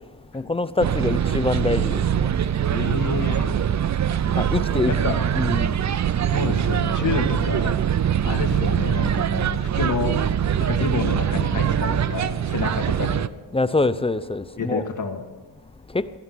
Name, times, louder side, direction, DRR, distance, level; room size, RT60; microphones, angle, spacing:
voice 1, 0.3-2.0 4.4-5.0 5.3-5.7 13.5-14.9, left 3 dB, 10° left, 0.5 m, -24 dB
sound 1, 0.8-13.3, right 9 dB, 35° right, 0.5 m, -23 dB
voice 2, 2.7-3.5 4.9-5.3 6.1-7.8 8.2-10.1 10.6-13.3 14.6-15.2, left 4 dB, 40° left, 2.0 m, -28 dB
15.5 x 11.0 x 6.1 m
cardioid pair, 90°, 48 cm